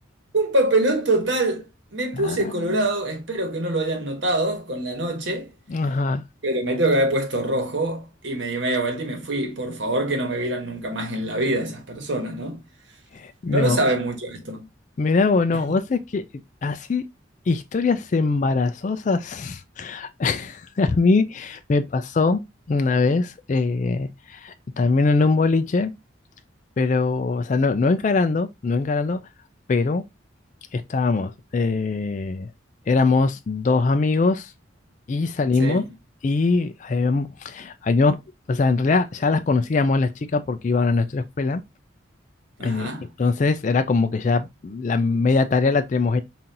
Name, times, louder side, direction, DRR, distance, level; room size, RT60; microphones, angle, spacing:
voice 1, 0.3-1.7 1.9-5.5 6.4-12.6 13.5-14.6 35.6-35.9 42.6-43.1, right 1 dB, 70° right, 1.3 m, -24 dB
voice 2, 2.1-2.9 5.7-6.2 13.1-13.8 15.0-16.2 16.6-17.0 17.5-22.4 22.7-25.9 26.8-29.2 29.7-30.0 30.7-32.5 32.9-34.5 35.1-35.8 36.2-38.2 38.5-41.6 42.6-42.9 43.2-46.2, left 3 dB, 40° left, 0.3 m, -22 dB
5.5 x 2.6 x 2.8 m
head